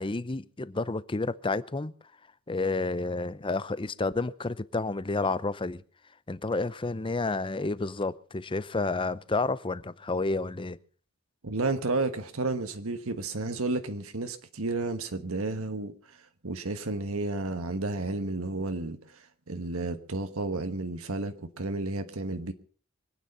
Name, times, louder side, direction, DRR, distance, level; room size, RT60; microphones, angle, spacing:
voice 1, 0.0-1.9 2.5-5.8 6.3-10.8, left 3 dB, 25° left, 0.6 m, -30 dB
voice 2, 11.4-22.5, right 2 dB, 70° right, 1.3 m, -32 dB
24.0 x 9.3 x 5.6 m
head